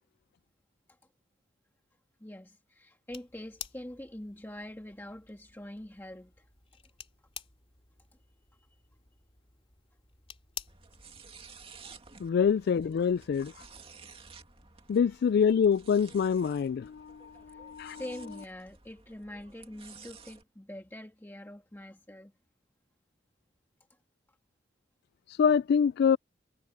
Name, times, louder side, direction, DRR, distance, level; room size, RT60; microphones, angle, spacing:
voice 1, 2.2-6.5 12.3-12.4 15.0-15.2 17.5-22.3, left 1 dB, 10° left, 1.6 m, -45 dB
sound 1, 3.1-11.2, left 8 dB, 30° left, 2.9 m, -50 dB
sound 2, 10.7-20.4, right 5 dB, 30° right, 2.3 m, -53 dB
voice 2, 12.2-13.5 14.9-18.0 25.4-26.2, left 7 dB, 60° left, 0.3 m, -25 dB
head